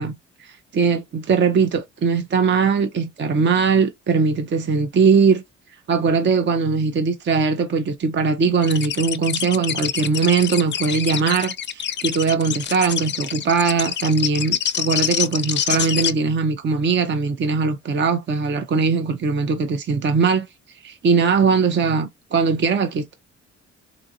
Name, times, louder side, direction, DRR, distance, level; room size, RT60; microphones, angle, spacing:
voice 1, 0.0-5.4 5.9-20.5 20.8-23.1, right 5 dB, 40° right, 0.6 m, -20 dB
sound 1, 8.6-16.1, left 9 dB, 40° left, 0.4 m, -26 dB
3.8 x 2.4 x 2.7 m
cardioid pair, 90°, 30 cm